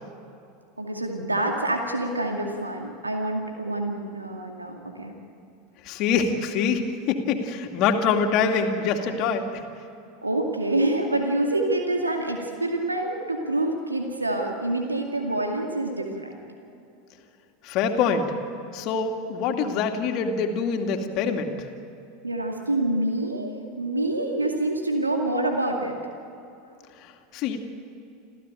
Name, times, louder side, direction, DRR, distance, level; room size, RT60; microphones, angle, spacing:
voice 1, 0.8-5.1 10.2-16.3 22.2-26.0, right 1 dB, 85° right, 2 dB, 2.3 m, -26 dB
voice 2, 5.8-9.5 17.6-18.3 18.7-21.6 27.0-27.6, left 6 dB, 45° left, 5 dB, 2.4 m, -25 dB
28.0 x 15.0 x 9.1 m, 2.8 s
figure-of-eight pair, 80°, 0 cm